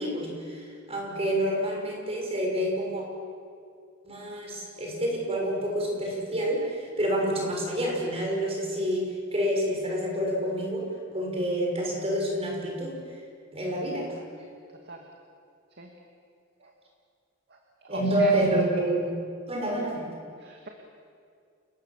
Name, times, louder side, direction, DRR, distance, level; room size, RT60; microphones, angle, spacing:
voice 1, 0.0-3.0 4.0-10.9 11.1-13.0 13.5-14.1 17.9-19.1 19.5-20.1, equal, 30° right, -1 dB, 6.0 m, -28 dB
voice 2, 17.5-18.4 20.4-20.7, right 3 dB, 55° right, 1 dB, 2.3 m, -40 dB
29.0 x 20.0 x 7.6 m, 2.3 s
head